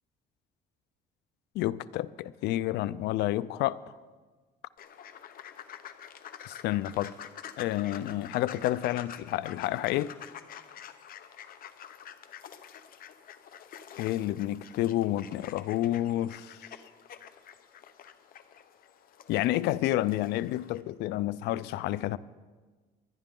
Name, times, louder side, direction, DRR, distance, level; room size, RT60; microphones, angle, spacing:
voice 1, 1.5-3.8 6.5-7.3 7.6-10.1 14.0-16.6 19.3-22.2, left 14 dB, 80° left, 0.5 m, -29 dB
sound 1, 4.8-20.8, left 9 dB, 60° left, 0.9 m, -48 dB
23.5 x 10.5 x 3.8 m
cardioid pair, 110°, 17 cm